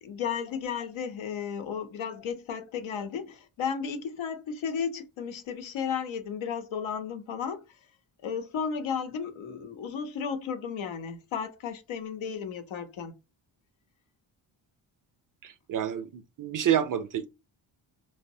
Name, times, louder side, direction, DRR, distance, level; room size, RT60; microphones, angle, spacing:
voice 1, 0.0-7.6 8.2-13.2, left 7 dB, 75° left, 0.8 m, -34 dB
voice 2, 15.4-17.3, right 10 dB, 45° right, 0.4 m, -28 dB
3.1 x 2.0 x 2.6 m
cardioid pair, 85°, 47 cm